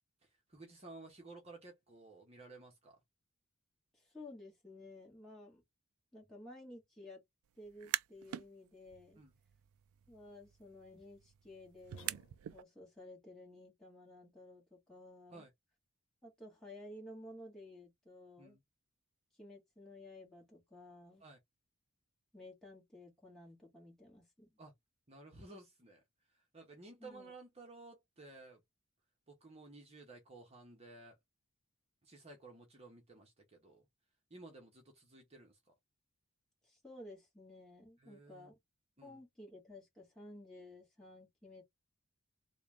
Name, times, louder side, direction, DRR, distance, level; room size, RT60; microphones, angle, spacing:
voice 1, 0.2-3.0 9.2-9.3 15.3-15.5 18.4-18.6 21.2-21.4 24.6-24.7 25.1-26.0 26.3-28.6 29.3-31.2 32.0-33.8 34.3-35.6 38.0-38.5 39.0-39.2, right 2 dB, 30° right, 0.9 m, -55 dB
voice 2, 3.9-5.6 6.1-7.2 7.6-9.2 10.1-12.2 12.5-15.5 16.2-18.6 19.4-21.2 22.3-24.5 27.0-27.3 36.6-38.5 39.0-41.6, left 1 dB, ahead, 1.7 m, -54 dB
sound 1, 7.7-8.5 8.9-12.6, right 13 dB, 80° right, 0.3 m, -44 dB
sound 2, 11.9-12.8, left 4 dB, 60° left, 1.0 m, -61 dB
3.6 x 2.3 x 3.4 m
head